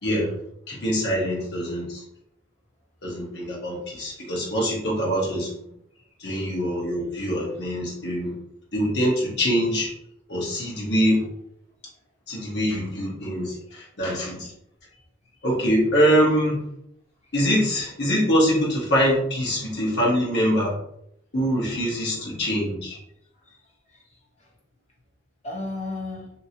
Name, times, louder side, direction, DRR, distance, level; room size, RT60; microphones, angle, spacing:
voice 1, 0.0-0.3 0.7-2.0 3.0-5.5 6.2-8.3 8.7-9.9 10.3-11.2 12.3-14.5 15.4-16.6 17.3-20.7 21.3-23.0, equal, 60° left, -3 dB, 1.0 m, -24 dB
voice 2, 5.7-6.2 10.5-10.6 14.4-14.5 23.4-24.5 25.4-26.3, left 2 dB, 35° left, -4 dB, 1.0 m, -37 dB
2.8 x 2.6 x 2.7 m, 0.76 s
head